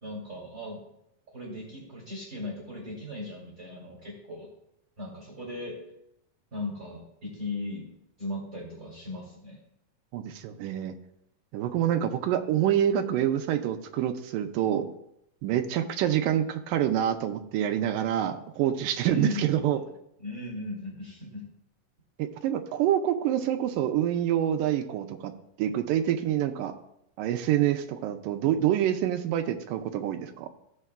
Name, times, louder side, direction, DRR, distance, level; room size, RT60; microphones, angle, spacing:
voice 1, 0.0-0.8 1.3-4.5 5.0-5.8 6.5-7.8 8.2-9.6 19.0-19.9 20.2-21.5, left 2 dB, 25° right, -5 dB, 2.5 m, -37 dB
voice 2, 10.1-10.9 11.5-14.9 15.4-19.8 22.2-25.3 25.6-26.7 27.2-30.5, right 11 dB, 80° right, 6 dB, 2.1 m, -26 dB
16.0 x 6.4 x 2.3 m, 0.80 s
omnidirectional pair, 4.0 m